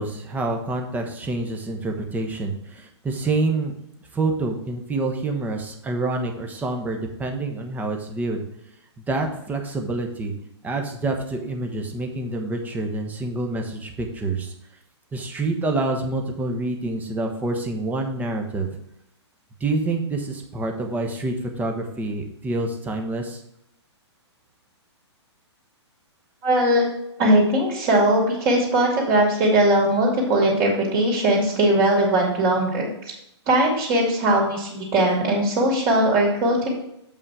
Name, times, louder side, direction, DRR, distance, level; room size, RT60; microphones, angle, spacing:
voice 1, 0.0-3.7 4.1-8.4 9.1-10.3 10.6-14.5 15.1-18.7 19.6-23.4, right 2 dB, 10° right, 3 dB, 1.0 m, -27 dB
voice 2, 26.4-26.8 27.2-33.1 33.5-36.7, right 1 dB, 30° right, -1 dB, 2.6 m, -20 dB
7.4 x 5.5 x 4.8 m, 0.80 s
hypercardioid pair, 135°, 15 cm